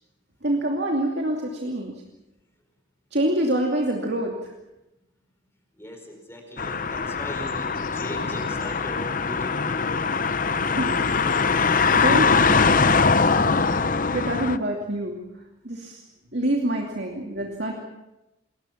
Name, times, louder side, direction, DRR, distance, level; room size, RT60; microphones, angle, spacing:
voice 1, 0.4-2.0 3.1-4.5 10.6-10.9 11.5-15.2 15.6-16.0 16.3-17.8, right 1 dB, 55° right, 0 dB, 2.6 m, -27 dB
voice 2, 5.7-10.1 17.3-17.5, equal, 10° left, 3 dB, 4.7 m, -39 dB
sound 1, 6.6-14.6, left 4 dB, 40° left, 0.7 m, -22 dB
28.5 x 22.0 x 5.9 m, 0.97 s
head